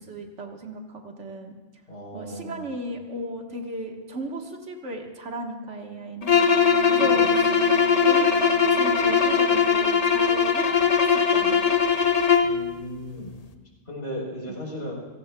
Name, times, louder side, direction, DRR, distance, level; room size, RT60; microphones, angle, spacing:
voice 1, 0.0-1.5 2.1-6.4 6.9-8.5 8.8-11.8 14.5-14.6, right 1 dB, 90° right, 2 dB, 1.7 m, -35 dB
voice 2, 1.9-2.7 7.0-7.3 12.4-13.3 13.9-14.9, equal, 65° left, -2 dB, 4.1 m, -36 dB
sound 1, 6.2-12.6, left 6 dB, 40° left, 0.8 m, -20 dB
Wind instrument woodwind instrument, 6.5-10.0, right 7 dB, 65° right, 1.2 m, -35 dB
29.5 x 17.0 x 2.3 m, 1.2 s
omnidirectional pair, 1.2 m